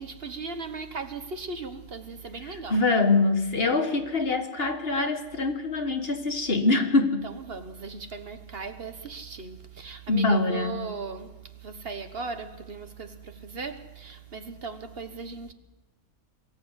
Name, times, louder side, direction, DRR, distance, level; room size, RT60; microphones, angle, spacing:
voice 1, 0.0-2.8 7.2-15.5, right 4 dB, 55° right, 1.4 m, -38 dB
voice 2, 2.4-7.3 10.1-10.8, left 3 dB, 50° left, 1.8 m, -24 dB
23.5 x 14.5 x 8.2 m
omnidirectional pair, 1.3 m